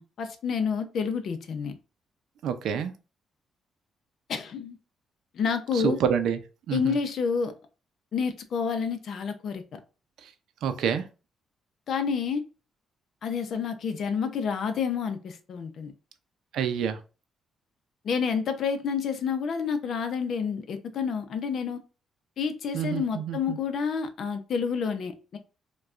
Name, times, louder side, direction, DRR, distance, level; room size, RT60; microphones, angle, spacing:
voice 1, 0.0-1.8 4.3-4.8 5.3-6.0 6.7-7.5 8.1-9.8 11.9-12.4 13.2-15.9 18.0-21.8 22.4-25.4, left 6 dB, 60° left, 0.6 m, -29 dB
voice 2, 2.4-2.9 5.7-6.4 6.7-7.0 10.6-11.0 16.5-17.0 22.7-23.6, right 8 dB, 75° right, 0.5 m, -27 dB
4.7 x 2.3 x 2.4 m
cardioid pair, 90°, 0 cm